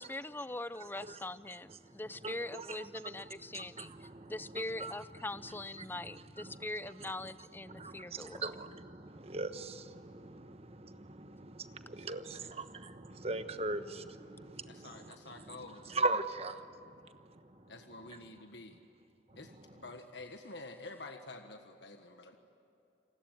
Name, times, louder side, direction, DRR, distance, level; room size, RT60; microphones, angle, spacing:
voice 1, 0.0-8.4, left 2 dB, 10° left, 15 dB, 0.5 m, -42 dB
voice 2, 1.8-5.1 5.4-7.3 7.6-17.7 18.1-18.2 19.3-19.6, right 2 dB, 35° right, 10 dB, 1.2 m, -41 dB
voice 3, 11.9-12.5 14.7-16.0 17.7-18.8 19.3-22.4, left 2 dB, 65° left, 5 dB, 1.5 m, -49 dB
29.0 x 20.5 x 9.4 m, 2.9 s
head